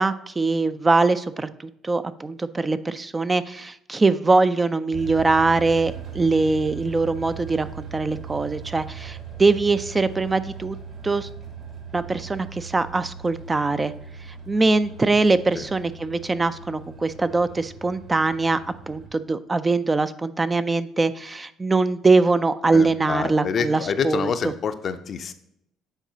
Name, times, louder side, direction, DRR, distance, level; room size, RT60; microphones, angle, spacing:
voice 1, 0.0-10.8 11.0-11.3 11.9-13.9 14.5-18.6 18.9-24.3, right 3 dB, 25° right, 12 dB, 0.4 m, -22 dB
sound 1, 4.9-19.1, right 6 dB, 55° right, 2.4 m, -39 dB
voice 2, 22.7-25.3, left 6 dB, 50° left, 10 dB, 0.5 m, -27 dB
9.0 x 3.9 x 2.8 m, 0.77 s
hypercardioid pair, 60°, 0 cm